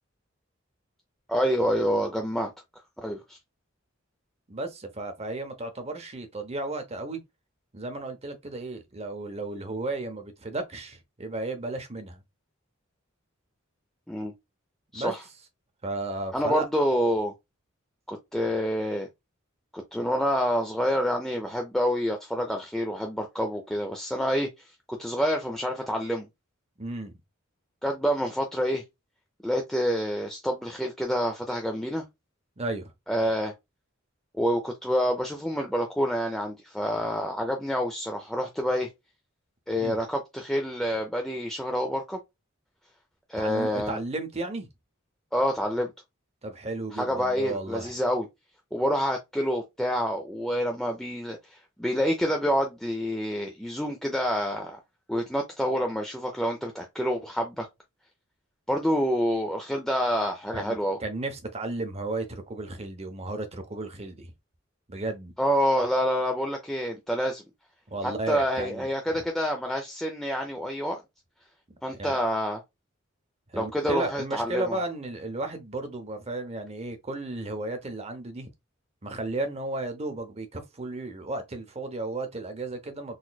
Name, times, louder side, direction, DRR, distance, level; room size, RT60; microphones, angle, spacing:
voice 1, 1.3-2.5 3.0-3.4 14.1-14.3 14.9-15.2 16.3-17.3 18.1-19.1 19.7-24.5 24.9-26.3 27.8-28.8 29.4-32.0 33.1-33.5 34.3-38.9 39.7-42.2 43.3-44.0 45.3-45.9 46.9-48.3 48.7-54.8 55.1-57.7 58.7-61.0 65.4-67.4 68.0-71.0 71.8-72.6 73.5-74.8, equal, ahead, 0.5 m, -27 dB
voice 2, 4.5-7.2 7.7-12.2 14.9-15.1 15.8-16.7 26.8-27.2 32.6-32.9 39.8-40.0 43.4-44.7 46.4-47.9 60.5-64.3 64.9-65.3 67.9-69.2 72.0-72.2 73.5-78.5 79.0-83.2, right 2 dB, 30° right, 0.8 m, -34 dB
4.0 x 3.0 x 2.3 m
head